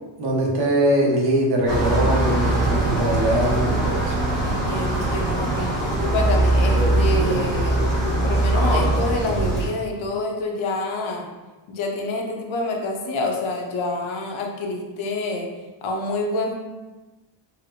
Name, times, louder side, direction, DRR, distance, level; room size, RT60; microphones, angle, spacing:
voice 1, 0.2-4.1, right 1 dB, 50° right, -2 dB, 0.8 m, -21 dB
sound 1, 1.7-9.7, right 2 dB, 20° right, 1.4 m, -21 dB
voice 2, 4.4-7.9 8.2-11.3 11.7-15.5 15.8-16.6, left 2 dB, 70° left, 1 dB, 0.7 m, -27 dB
4.0 x 2.0 x 2.7 m, 1.2 s
cardioid pair, 150°, 49 cm